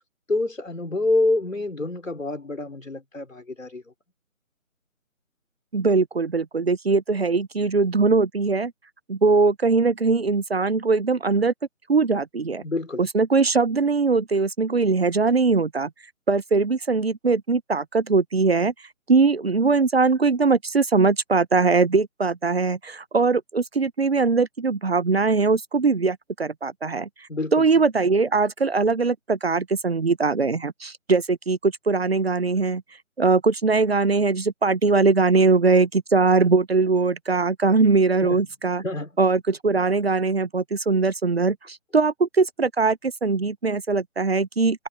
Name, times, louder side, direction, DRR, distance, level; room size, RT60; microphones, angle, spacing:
voice 1, 0.3-3.8 12.6-13.0 27.3-27.6 38.2-38.4 38.8-39.2, left 2 dB, 70° left, 5.2 m, -26 dB
voice 2, 5.7-8.7 9.1-11.5 11.9-12.6 13.0-15.9 16.3-18.7 19.1-32.8 33.2-38.8 39.2-44.9, right 4 dB, 50° right, 0.8 m, -21 dB
figure-of-eight pair, 155°, 41 cm